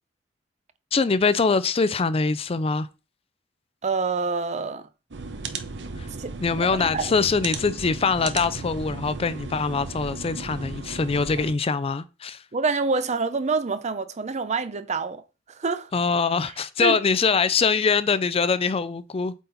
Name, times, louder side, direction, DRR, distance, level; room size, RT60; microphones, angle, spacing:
voice 1, 0.9-2.9 6.0-6.1 6.4-12.4 15.9-19.3, left 4 dB, 30° left, 0.4 m, -23 dB
voice 2, 3.8-4.9 6.2-7.1 12.5-15.2 15.5-15.9 16.8-17.0, right 4 dB, 40° right, 0.6 m, -27 dB
sound 1, 5.1-11.5, right 3 dB, 70° right, 0.9 m, -35 dB
8.2 x 4.2 x 3.9 m
head